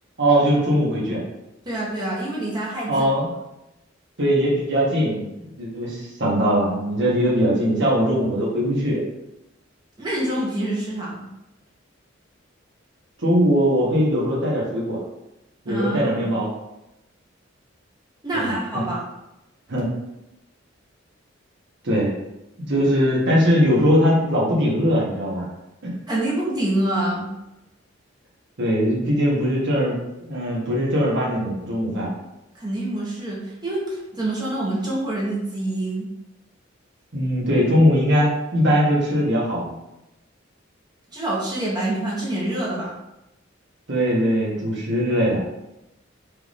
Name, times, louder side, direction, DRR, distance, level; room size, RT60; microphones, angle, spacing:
voice 1, 0.2-1.2 2.9-3.3 4.2-9.0 13.2-15.0 15.6-16.5 18.3-18.5 19.7-19.9 21.8-22.1 22.6-25.4 25.8-25.9 28.6-32.1 37.1-39.7 43.9-45.4, equal, 65° right, -5 dB, 1.2 m, -20 dB
voice 2, 1.6-2.9 10.0-11.3 15.7-16.3 18.2-19.0 26.1-27.3 32.5-36.1 41.1-42.9, right 1 dB, 20° right, -6 dB, 0.9 m, -26 dB
4.6 x 2.5 x 3.4 m, 0.91 s
head